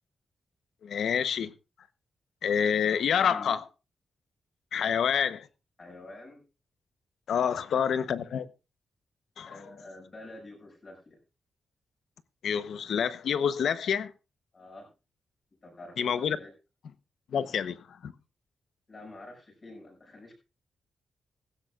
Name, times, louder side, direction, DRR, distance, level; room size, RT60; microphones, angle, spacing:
voice 1, 0.8-1.5 2.4-3.6 4.7-5.4 7.3-8.5 9.4-9.6 12.4-14.1 16.0-16.4 17.3-17.8 18.0-18.1, left 7 dB, 75° left, 0.8 m, -27 dB
voice 2, 3.3-3.6 4.7-5.3 5.8-6.4 7.5-7.9 9.5-11.2 14.5-14.9 15.6-16.5 18.9-20.3, left 2 dB, 30° left, 6.2 m, -48 dB
17.0 x 16.0 x 2.4 m
wide cardioid pair, 170°, 0 cm